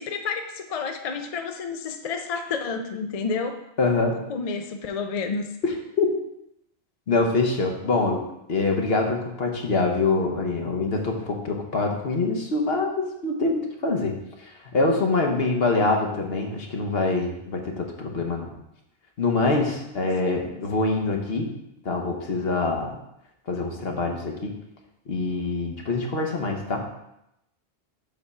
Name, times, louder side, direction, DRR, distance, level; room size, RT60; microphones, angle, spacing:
voice 1, 0.0-3.6 4.1-5.5 20.5-20.6, left 5 dB, 45° left, 6 dB, 0.5 m, -30 dB
voice 2, 3.8-4.2 5.6-6.1 7.1-8.2 8.5-14.1 14.4-18.5 19.2-21.5 21.8-23.0 23.5-24.5 25.1-26.9, left 3 dB, 65° left, 3 dB, 1.2 m, -25 dB
7.2 x 3.5 x 5.4 m, 0.83 s
omnidirectional pair, 1.1 m